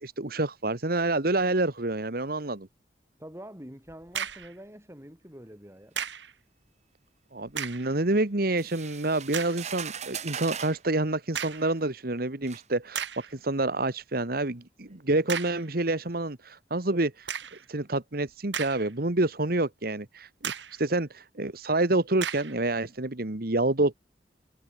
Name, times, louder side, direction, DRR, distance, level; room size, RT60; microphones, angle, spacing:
voice 1, 0.0-2.7 7.3-17.3 17.7-23.9, right 2 dB, 55° right, 1.6 m, -28 dB
voice 2, 3.2-6.0, equal, 15° right, 7.5 m, -46 dB
sound 1, 3.9-4.6 6.0-6.3 7.5-7.9 8.5-8.6 9.3-9.6 11.3-11.7 12.4-12.5 12.9-13.3 15.3-15.7 17.3-17.6 18.3-19.1 19.5-19.6 20.4-20.8 22.2-22.6, right 8 dB, 85° right, 2.8 m, -35 dB
sound 2, 8.6-10.8 11.8-11.9 12.5-12.7, right 8 dB, 40° right, 2.0 m, -38 dB
head